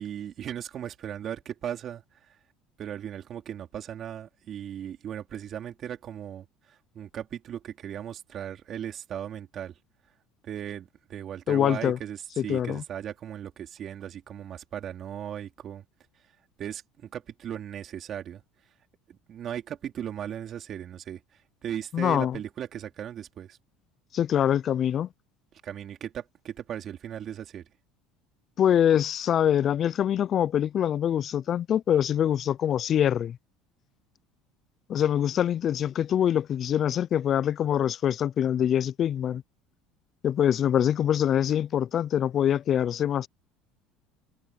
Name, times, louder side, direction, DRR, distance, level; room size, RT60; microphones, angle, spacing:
voice 1, 0.0-2.4 2.8-9.7 10.4-15.8 16.6-18.4 19.1-21.2 21.6-23.6 25.6-27.6, right 10 dB, 45° right, 4.3 m, -37 dB
voice 2, 11.5-12.0 12.4-12.8 21.9-22.4 24.1-25.1 28.6-33.4 34.9-39.4 40.2-43.3, left 10 dB, 45° left, 0.4 m, -24 dB
supercardioid pair, 100°, 0 cm